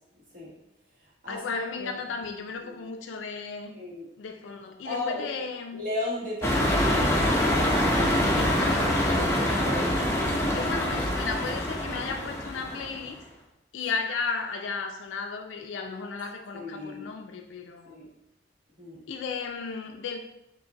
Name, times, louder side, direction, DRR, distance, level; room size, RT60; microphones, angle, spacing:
voice 1, 1.3-3.7 4.2-5.8 8.4-9.4 10.5-13.2 13.7-17.9 19.1-20.2, left 4 dB, 75° left, 5 dB, 0.3 m, -34 dB
voice 2, 3.7-4.1 4.8-5.3 5.7-7.8 9.5-10.6 13.8-13.9 16.5-17.1 17.9-18.1 18.8-19.0, left 2 dB, 45° right, -5 dB, 1.3 m, -36 dB
sound 1, 6.4-13.0, left 1 dB, 15° left, 0.6 m, -25 dB
5.5 x 2.5 x 2.8 m, 0.86 s
head